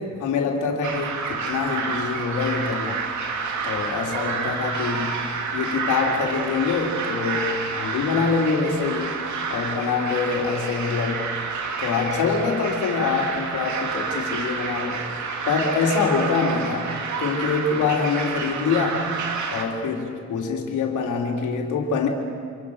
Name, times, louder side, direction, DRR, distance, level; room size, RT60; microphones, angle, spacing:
voice 1, 0.0-3.1 3.6-5.2 5.5-11.3 11.8-15.0 15.5-19.1 19.5-22.1, left 5 dB, 80° left, 1 dB, 3.9 m, -25 dB
sound 1, 0.8-19.7, right 5 dB, 70° right, 3.0 m, -29 dB
27.0 x 27.0 x 6.6 m, 2.2 s
cardioid pair, 90°, 30 cm